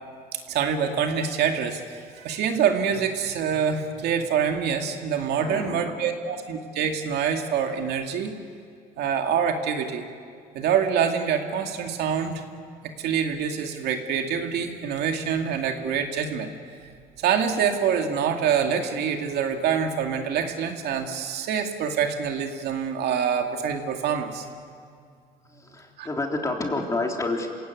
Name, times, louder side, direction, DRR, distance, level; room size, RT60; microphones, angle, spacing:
voice 1, 0.5-8.4 9.0-10.0 10.5-12.4 13.0-16.5 16.8-16.9 17.2-24.5 26.0-26.1, right 7 dB, 75° right, 4 dB, 2.3 m, -25 dB
voice 2, 5.4-6.1 25.5-27.5, left 2 dB, 20° left, 1 dB, 3.4 m, -29 dB
26.5 x 17.0 x 9.3 m, 2.2 s
cardioid pair, 110°, 17 cm